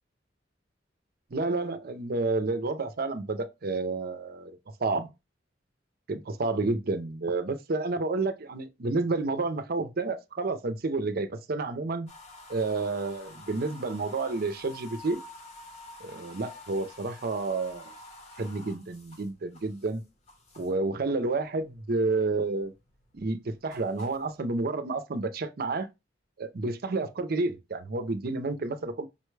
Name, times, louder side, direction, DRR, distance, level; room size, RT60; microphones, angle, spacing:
voice 1, 1.3-5.1 6.1-12.1 12.5-15.2 16.0-17.9 18.4-20.0 20.6-22.7 23.1-25.9 26.4-29.1, right 3 dB, 55° right, 0.6 m, -30 dB
sound 1, 12.1-20.9 21.3-22.0 22.3-24.4, left 2 dB, 35° left, 0.9 m, -49 dB
5.3 x 2.2 x 3.1 m
head